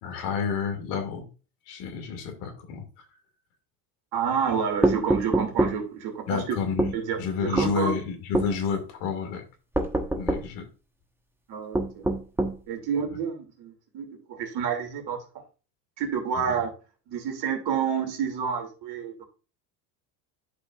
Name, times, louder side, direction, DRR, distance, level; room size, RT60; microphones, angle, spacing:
voice 1, 0.0-1.3 1.7-3.1 6.3-9.4 10.2-10.7 16.4-16.5, left 6 dB, 65° left, 5 dB, 2.4 m, -30 dB
voice 2, 4.1-6.6 6.9-7.9 11.5-12.0 12.7-15.2 16.0-16.7 17.1-19.2, right 7 dB, 50° right, 4 dB, 2.7 m, -29 dB
sound 1, 4.8-5.8 6.8-7.0 7.6-7.8 8.3-8.5 9.7-10.5 11.7-12.6, right 1 dB, 5° right, 1.2 m, -24 dB
11.5 x 5.1 x 2.4 m, 0.35 s
hypercardioid pair, 85°, 48 cm